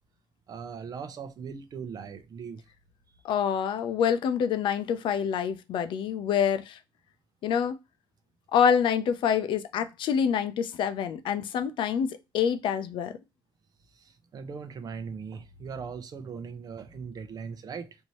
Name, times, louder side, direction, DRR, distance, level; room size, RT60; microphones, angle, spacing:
voice 1, 0.5-2.6 14.0-18.0, right 6 dB, 50° right, 0.7 m, -39 dB
voice 2, 3.2-6.8 7.4-7.8 8.5-12.1 12.3-13.1, left 8 dB, 75° left, 0.6 m, -26 dB
4.4 x 2.8 x 3.0 m
cardioid pair, 110°, 8 cm